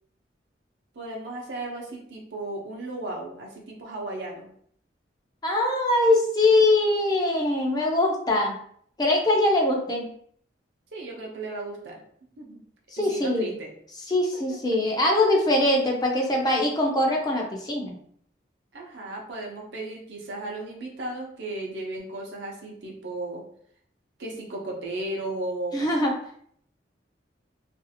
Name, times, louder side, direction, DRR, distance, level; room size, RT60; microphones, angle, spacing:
voice 1, 0.9-4.5 10.9-12.0 12.4-12.6 13.0-13.7 14.3-14.4 14.7-14.8 18.7-23.4 24.2-25.9, right 2 dB, 70° right, -1 dB, 0.7 m, -35 dB
voice 2, 5.4-8.6 9.0-10.1 12.9-13.5 14.1-18.0 25.7-26.1, left 2 dB, 20° left, -1 dB, 0.4 m, -22 dB
2.5 x 2.4 x 2.7 m, 0.63 s
head